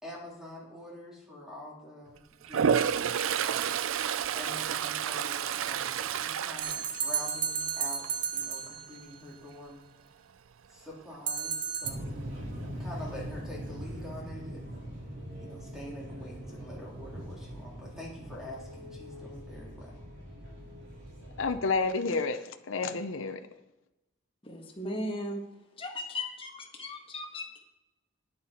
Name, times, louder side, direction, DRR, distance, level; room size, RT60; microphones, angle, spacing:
voice 1, 0.0-3.7 4.3-8.0 8.3-9.8 10.7-14.8 15.4-20.0, left 1 dB, 5° right, -5 dB, 3.5 m, -46 dB
Toilet flush, 2.4-7.6 8.0-8.4 12.9-13.0 13.3-14.0, right 8 dB, 75° right, 0.4 m, -30 dB
sound 1, 6.6-9.1 11.3-11.9, right 6 dB, 40° right, 1.0 m, -32 dB
sound 2, 11.8-21.6, equal, 60° right, 4.6 m, -42 dB
voice 2, 21.4-23.4, left 4 dB, 75° left, 8 dB, 0.6 m, -30 dB
voice 3, 24.4-25.4 25.8-27.6, left 1 dB, 25° left, 1 dB, 1.7 m, -37 dB
11.0 x 10.0 x 4.4 m, 0.97 s
head